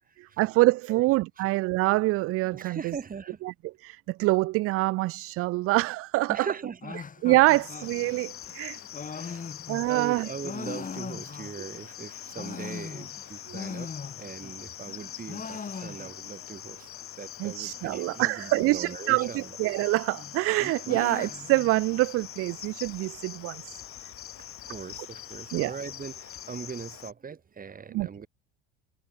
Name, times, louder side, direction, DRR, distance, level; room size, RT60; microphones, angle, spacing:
voice 1, 0.4-2.9 3.4-3.5 3.8-6.5 7.2-8.8 9.7-10.3 13.5-13.6 17.4-23.8 25.5-25.7 27.9-28.1, right 20 dB, 45° right, 0.7 m, -25 dB
voice 2, 2.5-3.4 6.3-7.1 9.1-9.5 9.9-13.9 14.2-19.6 20.6-21.1 24.7-28.3, right 6 dB, 25° right, 4.0 m, -40 dB
sound 1, 6.8-11.8 12.2-14.6 14.9-16.4 16.7-16.8 17.0-17.1 17.7-18.2 19.2-19.8 20.2-22.6, left 5 dB, 25° left, 5.3 m, -40 dB
Cricket, 7.5-27.1, left 11 dB, 40° left, 5.3 m, -43 dB
figure-of-eight pair, 65°, 32 cm